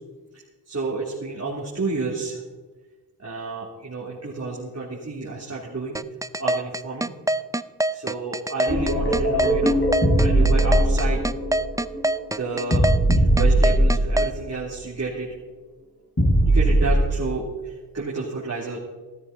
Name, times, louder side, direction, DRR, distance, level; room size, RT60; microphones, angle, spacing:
voice 1, 0.3-2.4 3.2-6.0 6.4-7.1 7.9-9.8 10.2-11.2 12.4-12.9 13.2-15.3 16.5-18.8, right 3 dB, 40° right, -5 dB, 3.1 m, -30 dB
sound 1, 5.9-14.3, right 1 dB, 10° right, 0.5 m, -24 dB
sound 2, 8.7-14.5 16.2-17.2, right 1 dB, 30° left, 5.7 m, -20 dB
16.0 x 13.5 x 4.1 m, 1.3 s
cardioid pair, 75°, 38 cm